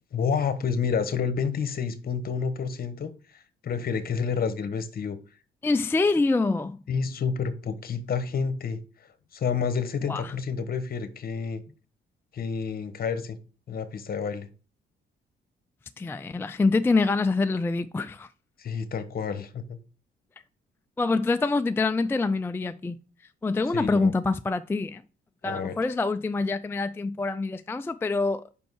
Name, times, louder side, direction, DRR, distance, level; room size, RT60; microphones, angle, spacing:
voice 1, 0.1-5.2 6.9-8.8 9.3-11.6 12.3-13.4 13.7-14.5 18.6-19.8 23.7-24.1 25.4-25.8, left 6 dB, 50° left, 1.2 m, -29 dB
voice 2, 5.6-6.8 10.1-10.3 16.0-18.3 21.0-23.0 23.4-25.0 25.4-28.4, left 3 dB, 10° left, 0.3 m, -25 dB
5.6 x 5.2 x 6.3 m
cardioid pair, 90°, 20 cm